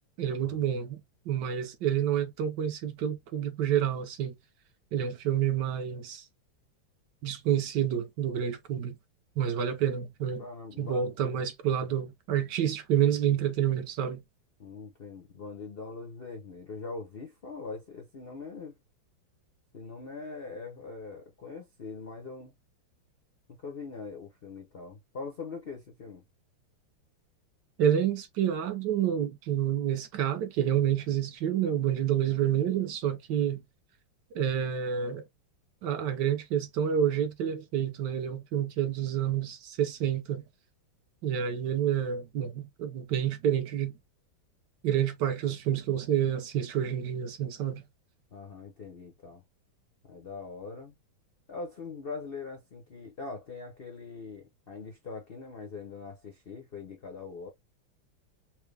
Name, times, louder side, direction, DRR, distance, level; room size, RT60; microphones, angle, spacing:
voice 1, 0.2-1.0 1.3-4.3 4.9-6.3 7.2-9.0 9.4-10.4 10.8-14.2 27.8-33.6 34.3-35.3 35.8-40.4 41.2-44.0 44.8-47.8, right 9 dB, 70° right, 1.1 m, -28 dB
voice 2, 10.4-11.2 14.6-18.8 19.7-22.5 23.5-26.2 48.3-49.4 50.0-50.9 51.5-57.5, left 4 dB, 80° left, 0.5 m, -42 dB
4.6 x 2.1 x 3.3 m
omnidirectional pair, 2.3 m